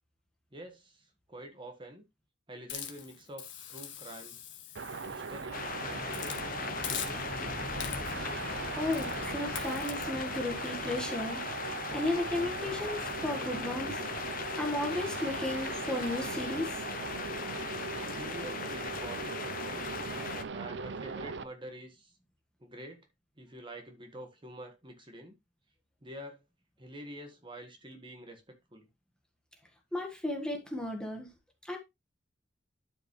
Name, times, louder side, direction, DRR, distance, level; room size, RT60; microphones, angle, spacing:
voice 1, 0.5-2.0 2.5-3.4 3.7-4.4 5.1-7.8 18.0-20.0 20.5-22.2 22.6-23.1 23.4-25.3 26.0-26.4 26.8-28.4 28.7-28.9, right 1 dB, 25° right, 1.6 m, -47 dB
Hiss, 2.7-5.6 6.1-6.4 6.8-7.4 7.8-8.3 8.9-9.2 9.6-10.0, left 9 dB, 75° left, 1.5 m, -42 dB
sound 1, 4.8-21.4, right 4 dB, 65° right, 0.6 m, -39 dB
sound 2, 5.5-20.4, left 5 dB, 50° left, 0.9 m, -39 dB
voice 2, 8.8-14.0 14.6-16.8 29.9-31.3 31.6-31.8, left 2 dB, 5° left, 1.6 m, -34 dB
12.0 x 5.2 x 3.2 m
head